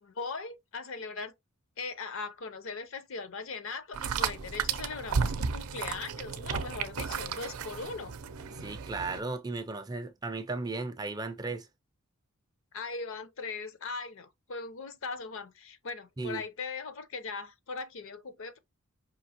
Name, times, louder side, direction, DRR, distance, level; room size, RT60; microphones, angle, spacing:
voice 1, 0.0-1.3 1.8-8.2 12.7-18.6, left 4 dB, 60° left, 0.6 m, -39 dB
sound 1, 3.9-9.2, right 5 dB, 80° right, 0.5 m, -33 dB
voice 2, 8.6-11.7 16.2-16.4, right 3 dB, 15° right, 0.4 m, -35 dB
5.2 x 2.8 x 2.8 m
head